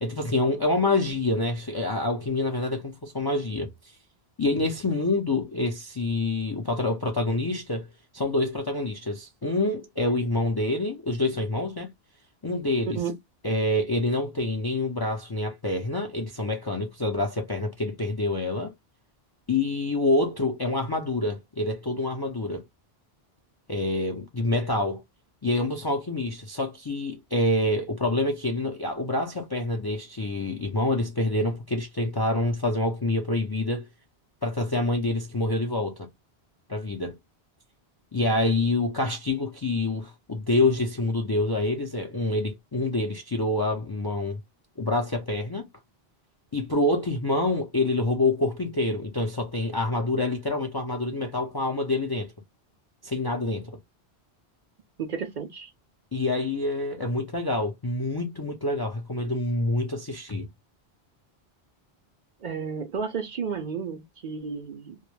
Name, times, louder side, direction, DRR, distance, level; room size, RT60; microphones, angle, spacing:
voice 1, 0.0-3.7 4.4-7.9 8.1-11.9 12.4-13.0 13.4-18.7 19.5-22.6 23.7-25.0 25.4-33.9 34.4-36.1 36.7-37.1 38.1-44.4 44.8-45.7 46.5-52.3 53.0-53.8 56.1-60.5, left 2 dB, 35° left, 0.4 m, -27 dB
voice 2, 55.0-55.7 62.4-65.0, right 6 dB, 55° right, 0.6 m, -32 dB
2.2 x 2.1 x 3.0 m
omnidirectional pair, 1.1 m